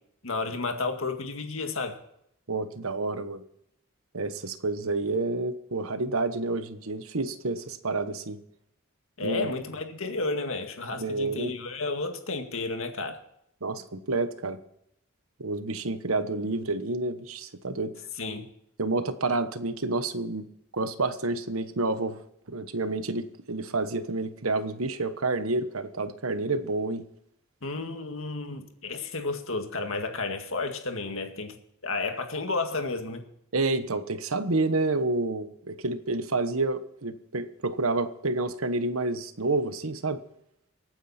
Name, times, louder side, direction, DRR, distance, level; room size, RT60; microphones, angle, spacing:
voice 1, 0.2-2.0 9.2-13.2 18.2-18.5 27.6-31.6 31.8-33.3, left 3 dB, 70° left, 2.0 m, -32 dB
voice 2, 2.5-3.4 4.1-8.4 9.2-9.5 10.9-11.5 13.6-14.6 15.4-17.9 18.8-20.5 20.7-22.2 22.5-27.0 33.5-40.2, right 3 dB, 80° right, 1.3 m, -29 dB
24.0 x 9.3 x 4.4 m
head